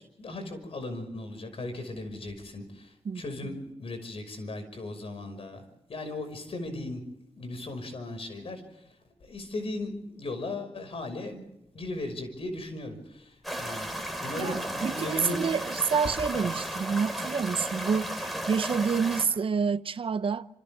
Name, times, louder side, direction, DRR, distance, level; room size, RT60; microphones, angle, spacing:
voice 1, 0.0-8.6 9.2-11.5 11.7-13.9 14.2-15.4 16.3-16.5, left 2 dB, 65° left, 5.8 m, -37 dB
sound 1, 13.4-19.3, equal, ahead, 3.8 m, -34 dB
voice 2, 14.4-20.5, right 6 dB, 60° right, 0.7 m, -28 dB
29.5 x 27.5 x 3.6 m
wide cardioid pair, 115°, 10 cm